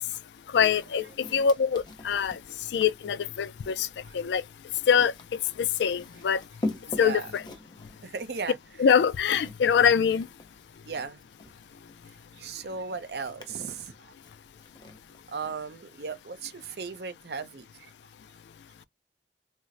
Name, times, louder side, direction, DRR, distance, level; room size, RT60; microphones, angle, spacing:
voice 1, 0.5-1.0 1.3-2.3 2.7-3.9 4.1-4.4 4.9-5.1 5.8-6.4 7.0-7.4 8.8-10.3, left 7 dB, 80° left, 0.3 m, -23 dB
Walk footsteps, 0.6-15.7, left 2 dB, 25° left, 0.6 m, -44 dB
voice 2, 6.9-7.3 8.0-8.6 10.9-11.2 12.4-14.1 15.3-17.9, right 5 dB, 65° right, 0.6 m, -36 dB
4.2 x 2.0 x 2.5 m
head